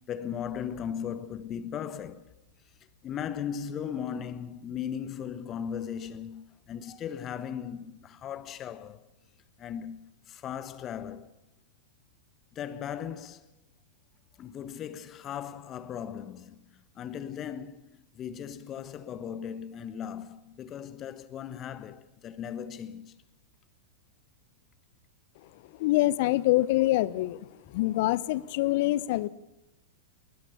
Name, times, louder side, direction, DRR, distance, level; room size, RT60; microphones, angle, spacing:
voice 1, 0.0-2.3 3.0-9.1 9.6-10.0 10.3-11.3 12.5-13.5 14.4-23.1, left 8 dB, 30° left, 1.3 m, -37 dB
voice 2, 25.8-27.5 27.7-29.3, left 17 dB, 55° left, 0.9 m, -25 dB
21.0 x 20.5 x 7.1 m
figure-of-eight pair, 100°, 0 cm